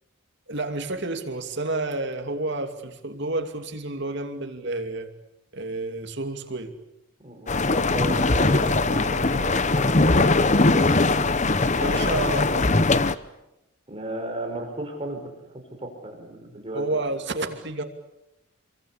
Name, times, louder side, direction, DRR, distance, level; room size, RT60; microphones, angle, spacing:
voice 1, 0.5-5.1 5.5-6.7 11.7-12.7 16.7-17.8, right 2 dB, 55° right, 6 dB, 2.7 m, -30 dB
voice 2, 7.2-10.4 10.7-11.1 13.9-16.8, right 1 dB, 25° right, 3 dB, 5.1 m, -35 dB
sound 1, 7.5-13.2, left 2 dB, 35° left, 0.9 m, -21 dB
28.0 x 23.0 x 8.4 m, 0.90 s
head